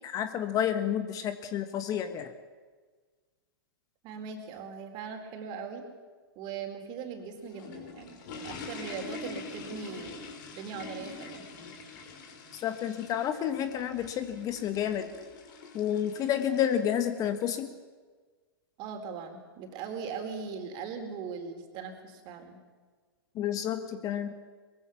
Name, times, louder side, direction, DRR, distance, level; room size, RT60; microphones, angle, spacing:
voice 1, 0.0-2.3 12.5-15.1 15.7-17.7 23.3-24.3, left 9 dB, 30° left, 10 dB, 1.4 m, -30 dB
voice 2, 4.0-5.8 6.4-10.2 10.5-11.4 18.8-22.6, right 6 dB, 35° right, 4 dB, 4.2 m, -40 dB
sound 1, 7.2-17.5, left 3 dB, 50° left, 5.1 m, -45 dB
23.0 x 22.0 x 7.2 m, 1.4 s
figure-of-eight pair, 110°, 13 cm